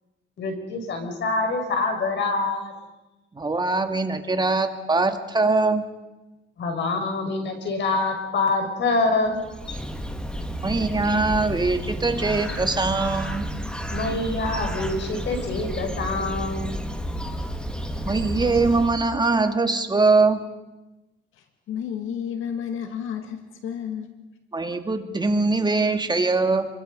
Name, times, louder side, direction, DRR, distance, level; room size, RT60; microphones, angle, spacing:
voice 1, 0.4-2.7 6.6-9.8 13.9-16.8, left 3 dB, 65° left, 4 dB, 6.2 m, -26 dB
voice 2, 3.4-5.8 10.6-13.5 18.0-20.5 24.5-26.7, right 3 dB, 20° right, 6 dB, 2.2 m, -22 dB
Bird, 9.3-19.3, equal, 5° left, 2.2 m, -31 dB
voice 3, 21.3-24.2, left 8 dB, 80° left, 6 dB, 2.2 m, -32 dB
29.5 x 24.0 x 5.5 m, 1.1 s
cardioid pair, 90°, 20 cm